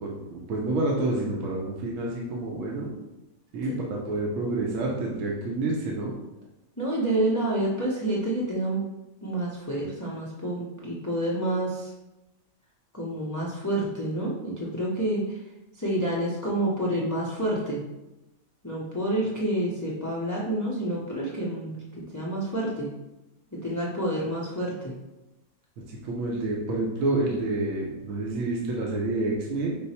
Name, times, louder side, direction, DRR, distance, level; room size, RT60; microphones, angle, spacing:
voice 1, 0.0-2.9 3.5-6.1 25.9-29.8, right 2 dB, 70° right, -2 dB, 1.1 m, -28 dB
voice 2, 3.6-4.0 6.8-8.8 9.2-11.9 12.9-15.4 15.7-17.8 18.6-22.9 23.5-24.9, right 1 dB, 25° left, -5 dB, 0.4 m, -28 dB
5.4 x 2.0 x 4.1 m, 0.98 s
omnidirectional pair, 1.5 m